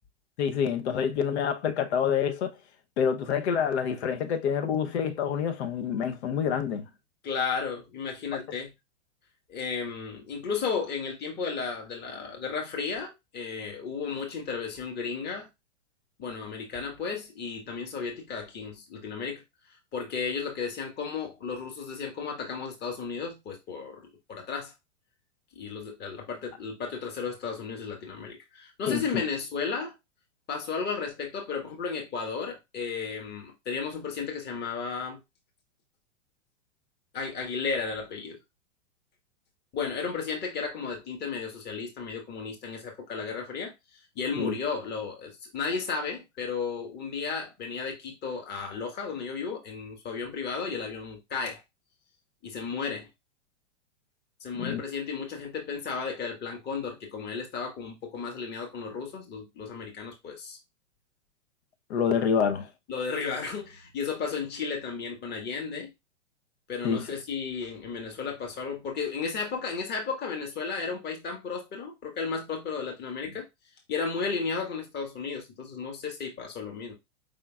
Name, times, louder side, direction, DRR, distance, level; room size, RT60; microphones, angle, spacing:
voice 1, 0.4-2.5 3.0-6.9 8.3-8.4 28.9-29.0 44.4-44.5 54.5-54.8 61.9-62.7 66.8-67.1, left 7 dB, 60° left, 0.9 m, -27 dB
voice 2, 7.2-8.7 9.5-15.5 16.2-19.4 19.9-24.7 25.6-29.9 30.5-35.2 37.1-38.4 39.7-43.7 44.2-51.6 52.4-53.1 54.4-60.6 62.9-65.9 66.7-73.5 73.9-76.9, left 5 dB, 25° left, 1.7 m, -34 dB
5.0 x 3.7 x 2.4 m
hypercardioid pair, 115°, 37 cm